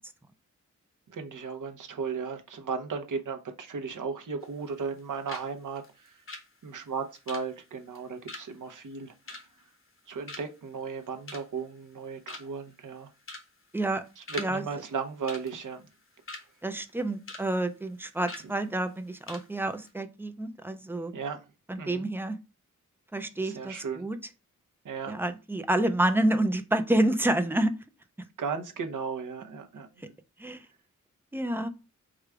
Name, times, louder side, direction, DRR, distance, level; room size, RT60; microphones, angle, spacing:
voice 1, 1.1-6.2 6.6-9.4 10.1-13.1 14.2-15.9 21.1-21.4 21.8-22.0 23.4-24.1 24.8-25.2 28.4-29.9, right 5 dB, 75° right, 0.8 m, -35 dB
sound 1, 4.4-5.0 5.3-5.5 5.8-10.0 10.3-10.7 11.0-11.6 12.0-12.1 12.3-12.7 13.2-13.5 13.8-14.5 14.8-14.9 15.3-16.5 16.9-17.5 17.7-17.9 18.3-18.5 18.9-19.0 19.3-19.5 19.7-19.9, left 2 dB, 40° left, 0.8 m, -43 dB
voice 2, 16.6-21.1 21.7-22.4 23.1-24.2 25.1-27.7 30.0-30.1 30.4-30.6 31.3-31.7, right 1 dB, 5° right, 0.4 m, -28 dB
4.9 x 2.2 x 4.7 m
wide cardioid pair, 165°, 31 cm